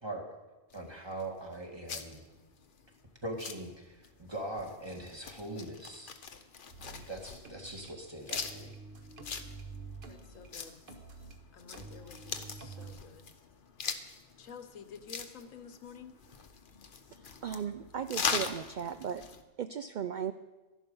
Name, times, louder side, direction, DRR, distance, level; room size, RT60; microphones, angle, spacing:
sound 1, 0.7-19.4, left 5 dB, 45° left, 0.9 m, -42 dB
voice 1, 0.7-2.2 3.2-6.2 6.8-8.7, right 1 dB, 20° right, 0 dB, 1.9 m, -41 dB
sound 2, 6.7-7.9 8.3-11.4 11.7-13.0, right 3 dB, 45° right, 1.3 m, -48 dB
voice 2, 10.1-10.8 11.5-13.3 14.4-16.1, left 6 dB, 85° left, 9 dB, 1.3 m, -50 dB
voice 3, 17.4-19.2 19.6-20.3, right 8 dB, 70° right, 10 dB, 0.4 m, -36 dB
13.0 x 11.0 x 5.4 m, 1.2 s
omnidirectional pair, 1.3 m